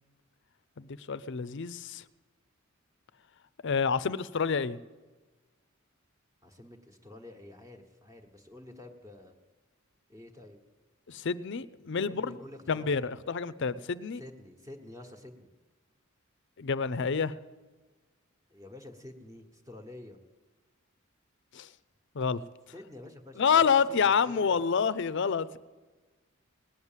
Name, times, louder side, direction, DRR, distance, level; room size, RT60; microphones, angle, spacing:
voice 1, 0.8-2.0 3.6-4.8 11.1-12.4 12.7-14.2 16.6-17.3 21.5-21.7 22.1-22.4 23.4-25.6, left 6 dB, 60° left, 17 dB, 0.6 m, -28 dB
voice 2, 6.4-9.3 10.1-10.6 12.1-12.9 14.1-15.5 18.5-20.2 22.7-24.6, left 1 dB, 15° right, 4 dB, 1.2 m, -48 dB
18.5 x 9.6 x 7.4 m, 1.3 s
head